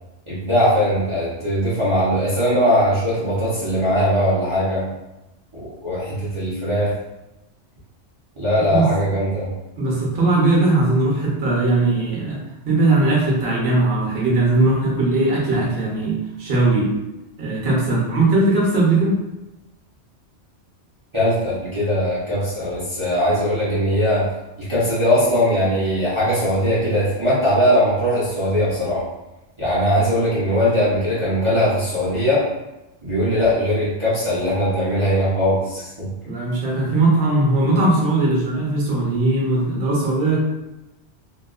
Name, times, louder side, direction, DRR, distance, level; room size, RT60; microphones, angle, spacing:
voice 1, 0.3-4.8 5.6-6.9 8.4-9.5 21.1-24.3 24.6-29.0 29.6-32.4 33.0-36.1, equal, 35° right, -10 dB, 0.5 m, -20 dB
voice 2, 9.8-16.9 17.4-19.2 36.2-40.4, right 2 dB, 55° right, -4 dB, 0.9 m, -19 dB
2.8 x 2.2 x 2.3 m, 1.0 s
omnidirectional pair, 1.3 m